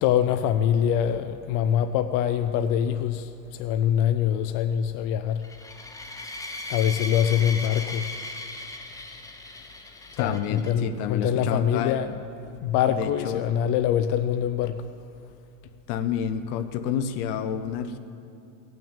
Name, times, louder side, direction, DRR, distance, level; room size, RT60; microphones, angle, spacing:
voice 1, 0.0-5.4 6.7-8.1 10.2-12.2 12.6-14.9, left 9 dB, 45° left, 0.5 m, -24 dB
sound 1, 5.4-10.7, left 2 dB, 5° left, 0.9 m, -37 dB
voice 2, 10.2-12.0 13.0-13.4 15.9-18.0, left 8 dB, 60° left, 1.1 m, -29 dB
17.0 x 6.2 x 8.8 m
supercardioid pair, 130°, 49 cm